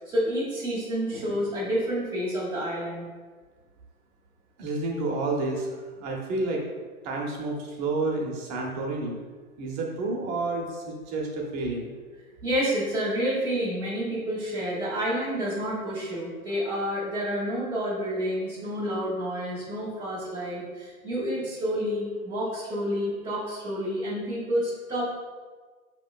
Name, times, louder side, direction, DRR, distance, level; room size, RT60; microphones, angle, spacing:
voice 1, 0.0-3.1 12.4-25.0, equal, 5° right, -17 dB, 0.3 m, -29 dB
voice 2, 4.6-5.7 6.0-6.6 7.0-9.2 9.6-11.9, right 2 dB, 30° right, 0 dB, 0.8 m, -30 dB
5.0 x 3.0 x 2.3 m, 1.4 s
figure-of-eight pair, 115°, 44 cm